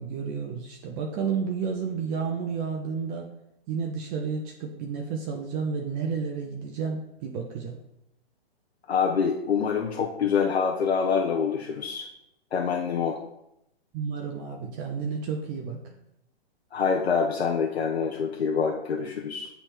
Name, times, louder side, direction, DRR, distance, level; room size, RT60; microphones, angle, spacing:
voice 1, 0.0-3.3 3.7-7.8 13.9-16.0, right 5 dB, 15° right, 1 dB, 0.4 m, -31 dB
voice 2, 8.9-12.1 12.5-13.2 16.7-19.5, left 6 dB, 85° left, 1 dB, 0.9 m, -26 dB
8.2 x 3.4 x 4.3 m, 0.84 s
hypercardioid pair, 140°, 31 cm